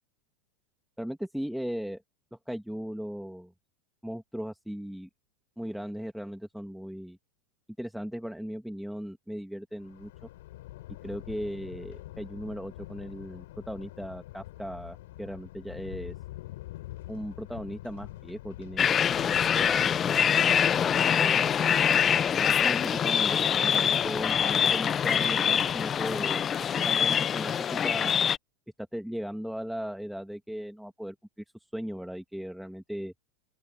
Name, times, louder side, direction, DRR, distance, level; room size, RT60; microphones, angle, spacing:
voice 1, 1.0-2.0 2.3-3.5 4.0-5.1 5.6-7.2 7.8-10.1 11.0-16.1 17.1-21.5 22.1-26.4 26.7-28.2 28.9-31.2 31.7-33.1, equal, ahead, 2.7 m, -38 dB
Thunder, 9.8-27.2, left 16 dB, 60° left, 6.3 m, -46 dB
sound 1, 18.8-28.4, left 8 dB, 30° left, 1.0 m, -24 dB
open air
figure-of-eight pair, 85°, 0 cm